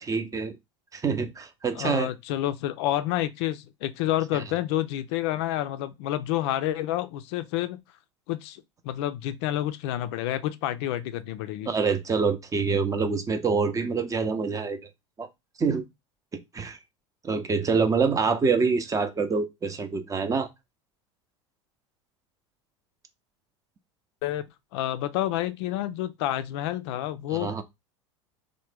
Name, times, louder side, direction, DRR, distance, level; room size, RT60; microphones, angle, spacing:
voice 1, 0.0-0.6 0.9-2.1 4.3-4.4 11.7-14.8 15.2-15.3 15.6-15.8 16.5-16.8 17.2-20.5 27.3-27.6, right 5 dB, 20° right, 0.5 m, -26 dB
voice 2, 1.8-7.8 8.3-11.7 24.2-24.4 24.7-27.6, left 13 dB, 60° left, 0.4 m, -29 dB
3.2 x 2.1 x 3.3 m
hypercardioid pair, 80°, 16 cm